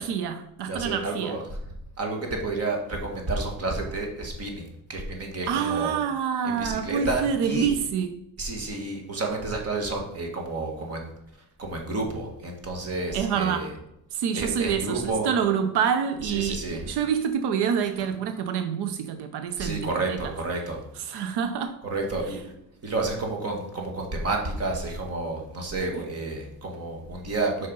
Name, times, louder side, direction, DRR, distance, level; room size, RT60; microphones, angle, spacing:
voice 1, 0.0-1.4 5.5-8.2 13.1-13.7 14.1-20.3 21.0-21.8, right 7 dB, 90° right, 0.7 m, -27 dB
voice 2, 0.7-1.4 2.0-5.9 6.4-7.7 8.4-11.1 11.6-13.7 14.3-15.3 16.2-16.8 19.6-20.8 21.8-22.4 22.8-27.7, right 2 dB, 40° right, 1.8 m, -30 dB
6.6 x 5.8 x 5.4 m
cardioid pair, 170°, 38 cm